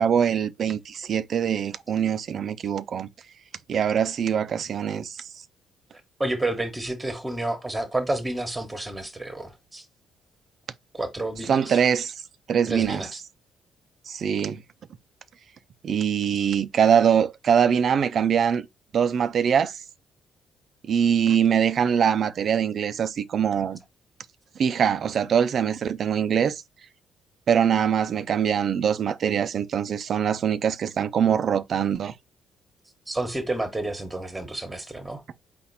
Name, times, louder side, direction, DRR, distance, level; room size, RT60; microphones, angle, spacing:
voice 1, 0.0-3.1 3.7-5.3 11.5-12.1 12.5-13.0 14.1-14.6 15.8-18.7 18.9-19.7 20.9-23.8 24.6-26.6 27.5-32.2, right 8 dB, 60° right, 0.4 m, -23 dB
voice 2, 6.2-9.8 10.9-11.9 12.6-13.2 33.1-35.2, right 2 dB, 15° right, 1.2 m, -30 dB
4.2 x 2.5 x 4.0 m
supercardioid pair, 70°, 0 cm